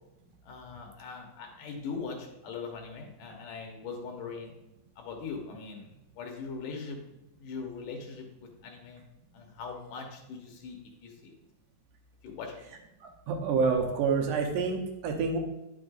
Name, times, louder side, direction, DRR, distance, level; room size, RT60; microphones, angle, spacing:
voice 1, 0.4-4.6 5.0-7.0 7.4-9.0 9.3-11.3 12.2-12.6, left 5 dB, 80° left, 2 dB, 2.8 m, -41 dB
voice 2, 13.0-15.4, right 5 dB, 80° right, 3 dB, 2.5 m, -28 dB
10.0 x 6.3 x 2.5 m, 0.95 s
omnidirectional pair, 3.7 m